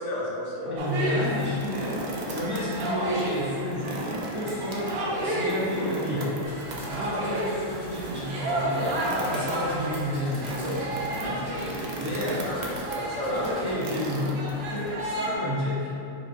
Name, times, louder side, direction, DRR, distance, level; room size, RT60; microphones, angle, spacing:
voice 1, 0.0-0.7 12.2-13.5, left 1 dB, 65° left, -5 dB, 1.1 m, -33 dB
voice 2, 0.7-6.4 6.9-11.5 11.9-12.4 13.3-15.9, left 1 dB, 25° right, -10 dB, 0.6 m, -31 dB
sound 1, 0.8-15.3, right 1 dB, 55° right, 0.8 m, -32 dB
sound 2, 1.4-2.9 3.2-3.3 3.7-14.9, right 1 dB, 80° right, 0.4 m, -37 dB
Domestic sounds home sounds, 6.4-13.7, equal, 20° left, 1.0 m, -47 dB
4.7 x 4.1 x 2.5 m, 2.7 s
omnidirectional pair, 1.4 m